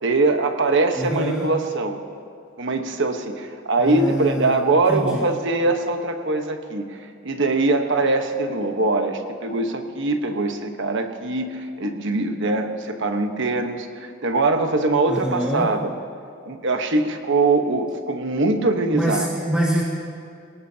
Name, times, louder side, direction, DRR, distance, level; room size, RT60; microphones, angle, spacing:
voice 1, 0.0-2.0 2.6-15.9 16.5-19.3, right 3 dB, 65° right, 5 dB, 1.2 m, -22 dB
voice 2, 1.0-1.5 3.8-4.5 4.9-5.2 15.1-15.7 18.9-19.8, equal, 5° right, -6 dB, 1.9 m, -25 dB
24.5 x 19.0 x 2.9 m, 2.4 s
head